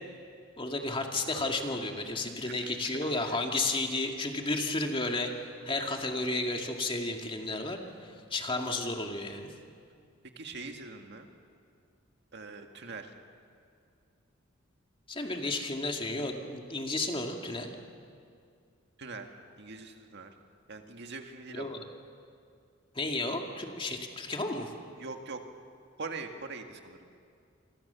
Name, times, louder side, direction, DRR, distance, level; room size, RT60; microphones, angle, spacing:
voice 1, 0.6-5.3 5.7-9.5 15.1-17.7 21.5-21.8 22.9-24.7, left 2 dB, 25° left, 3 dB, 2.3 m, -32 dB
voice 2, 2.4-3.4 10.4-11.3 12.3-13.1 19.0-19.3 19.6-20.3 20.7-21.8 25.0-25.4 26.0-27.2, right 4 dB, 60° right, 4 dB, 1.9 m, -43 dB
27.5 x 25.0 x 7.0 m, 2.3 s
head